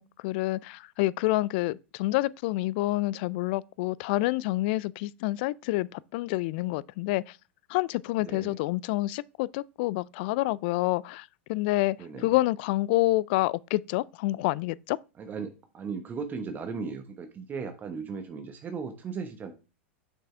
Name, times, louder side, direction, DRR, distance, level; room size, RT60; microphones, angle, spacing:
voice 1, 0.0-7.4 7.7-12.0 12.2-15.0, left 18 dB, 55° left, 0.3 m, -28 dB
voice 2, 8.2-8.6 12.0-12.3 15.2-19.5, right 5 dB, 25° right, 1.1 m, -37 dB
6.6 x 6.0 x 3.3 m
hypercardioid pair, 100°, 7 cm